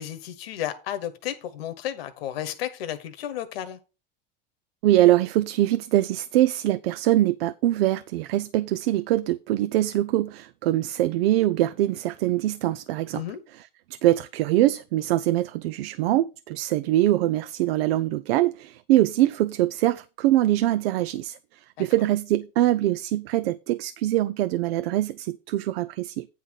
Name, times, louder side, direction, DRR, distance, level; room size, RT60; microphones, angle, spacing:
voice 1, 0.0-3.8 13.1-13.4 21.8-21.9, left 11 dB, 85° left, 1.2 m, -33 dB
voice 2, 4.8-13.2 13.5-26.3, right 14 dB, 85° right, 0.5 m, -23 dB
9.3 x 4.0 x 6.3 m
supercardioid pair, 130°, 29 cm